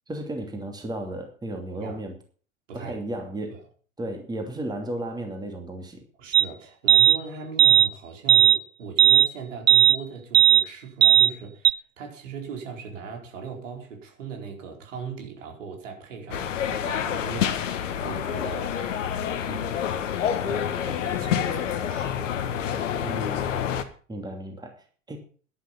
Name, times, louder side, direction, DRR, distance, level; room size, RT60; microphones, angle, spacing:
voice 1, 0.1-2.2 2.7-3.6 4.0-6.0 23.0-23.5 24.1-25.2, right 1 dB, 10° right, 2.9 m, -34 dB
voice 2, 2.7-3.0 3.5-3.6 6.2-18.8 19.5-19.9 20.5-22.1, right 5 dB, 65° right, 4.5 m, -39 dB
sound 1, 6.3-6.4 6.9-7.2 7.6-7.9 8.3-8.6 9.0-9.3 9.7-10.0 10.3-10.6 11.0-11.3 11.6-11.7, right 10 dB, 80° right, 0.7 m, -15 dB
sound 2, 16.3-23.8, left 9 dB, 65° left, 1.7 m, -28 dB
11.5 x 11.5 x 5.5 m
figure-of-eight pair, 90°, 40 cm